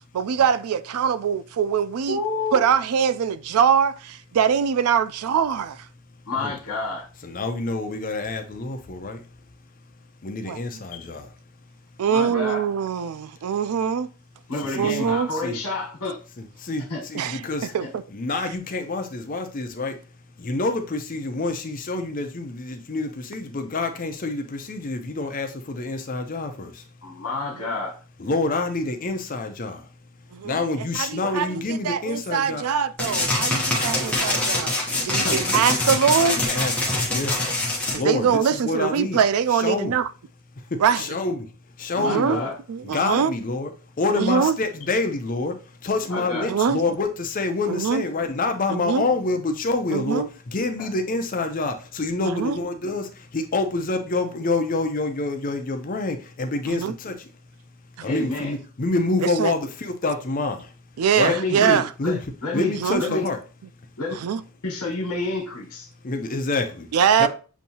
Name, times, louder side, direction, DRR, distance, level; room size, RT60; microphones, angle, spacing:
voice 1, 0.1-2.2 2.5-5.8 10.4-10.6 12.0-14.1 14.7-15.3 17.1-17.4 17.7-18.0 30.3-30.6 31.0-34.7 35.0-36.4 38.0-40.1 40.8-41.0 42.0-42.4 42.7-43.3 44.2-44.6 46.5-46.8 47.7-48.0 48.7-49.0 49.9-50.3 52.2-52.6 56.7-56.9 58.0-58.1 59.2-59.5 61.0-61.8 62.8-63.0 64.2-64.4 66.9-67.3, right 7 dB, 80° right, 0.4 m, -23 dB
voice 2, 2.1-2.7 6.3-7.1 10.9-11.1 12.1-12.6 14.5-16.2 16.9-17.0 17.8-17.9 27.0-28.0 35.2-35.6 42.0-42.5 46.1-46.5 50.8-50.9 58.0-58.5 61.2-62.7 63.0-63.3 64.0-64.1 64.6-65.9, left 3 dB, 85° left, 1.3 m, -29 dB
voice 3, 7.2-9.2 10.2-11.3 14.7-15.2 15.4-15.6 16.4-17.7 18.1-20.0 20.4-26.8 28.2-29.9 30.4-32.7 35.2-35.4 36.3-37.4 37.9-39.2 39.5-40.0 40.7-41.5 41.8-42.5 42.8-43.7 44.0-57.3 58.0-60.7 61.2-61.3 61.6-62.2 62.5-63.4 66.0-66.9 67.2-67.3, left 3 dB, 40° left, 0.5 m, -27 dB
sound 1, 33.0-38.0, left 1 dB, 5° left, 0.8 m, -24 dB
7.0 x 2.7 x 2.8 m
head